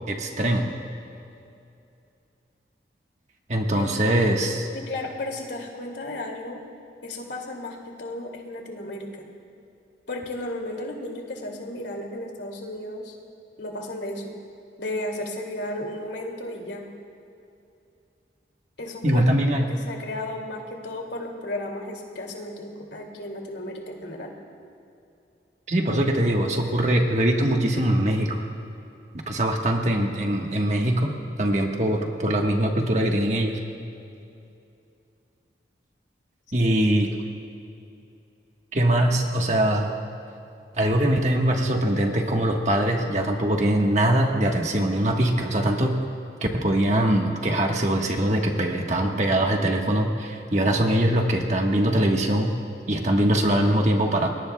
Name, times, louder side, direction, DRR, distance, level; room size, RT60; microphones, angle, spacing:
voice 1, 0.1-0.7 3.5-4.7 19.0-19.7 25.7-28.4 29.3-31.1 31.4-33.6 36.5-37.1 38.7-39.9 40.8-45.9 46.5-52.5 52.9-54.3, right 1 dB, 40° right, 1 dB, 1.4 m, -22 dB
voice 2, 3.7-4.1 4.7-6.6 7.0-9.3 10.1-13.2 13.6-14.3 14.8-16.8 18.8-19.2 19.5-24.3 36.6-36.7, left 1 dB, 85° left, 1 dB, 2.5 m, -34 dB
29.5 x 21.5 x 2.3 m, 2.6 s
head